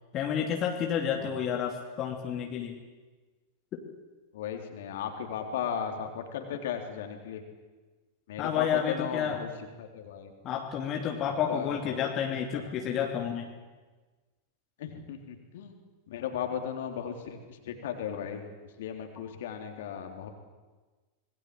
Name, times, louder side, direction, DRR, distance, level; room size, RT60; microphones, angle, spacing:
voice 1, 0.1-2.8 3.7-3.8 8.4-9.4 10.4-13.5, left 8 dB, 35° left, 1 dB, 2.7 m, -30 dB
voice 2, 4.3-7.4 8.3-9.5 9.8-10.3 11.5-12.0 14.8-15.8 16.1-18.4 18.8-20.3, left 8 dB, 55° left, 4 dB, 3.6 m, -36 dB
26.0 x 21.5 x 7.8 m, 1.3 s
figure-of-eight pair, 90°, 0 cm